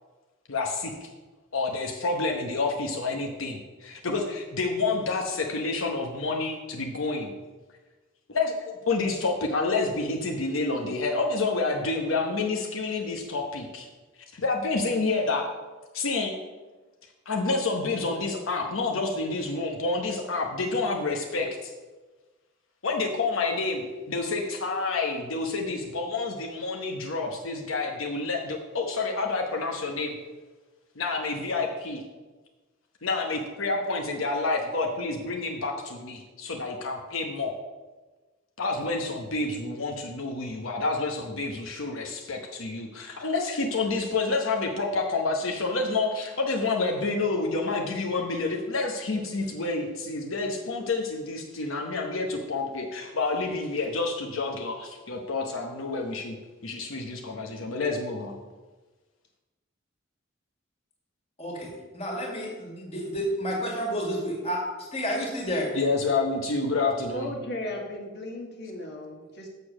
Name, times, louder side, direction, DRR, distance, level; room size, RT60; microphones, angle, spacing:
voice 1, 0.5-1.1 1.5-7.3 8.3-13.9 14.3-15.5 15.9-16.4 17.3-21.7 22.8-30.1 31.0-32.0 33.0-37.6 38.6-56.4 56.6-58.4 65.7-67.3, left 3 dB, 85° left, 1 dB, 1.0 m, -29 dB
voice 2, 61.4-64.6 64.9-65.7, equal, 30° left, -1 dB, 2.1 m, -30 dB
voice 3, 67.1-69.5, left 1 dB, 55° left, 1 dB, 1.7 m, -36 dB
6.8 x 6.7 x 6.2 m, 1.2 s
head